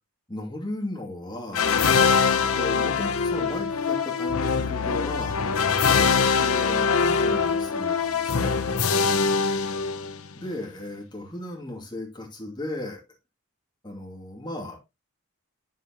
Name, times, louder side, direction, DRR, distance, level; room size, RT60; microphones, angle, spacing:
voice 1, 0.3-1.8 2.4-5.4 6.0-8.5 10.4-13.0 13.8-14.8, left 1 dB, 20° left, 2.5 m, -35 dB
sound 1, 1.5-10.4, left 5 dB, 80° left, 0.7 m, -23 dB
8.5 x 7.6 x 2.9 m
head